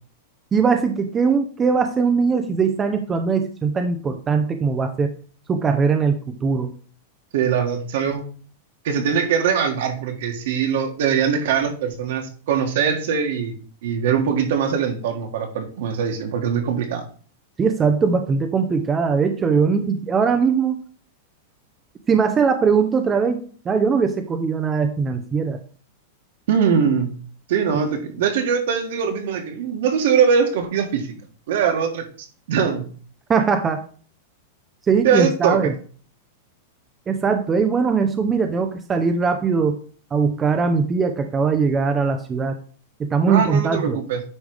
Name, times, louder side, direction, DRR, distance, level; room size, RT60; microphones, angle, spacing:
voice 1, 0.5-5.1 5.5-6.7 17.6-20.8 22.1-25.6 33.3-33.8 34.9-35.7 37.1-39.8 40.1-42.6 43.0-44.0, right 5 dB, 15° right, 6 dB, 0.6 m, -20 dB
voice 2, 7.3-8.2 8.8-13.6 13.8-17.0 26.5-27.2 27.5-31.1 31.5-32.9 35.0-35.7 43.3-44.2, right 7 dB, 65° right, 5 dB, 1.7 m, -22 dB
9.4 x 3.3 x 4.9 m, 0.42 s
supercardioid pair, 160°, 0 cm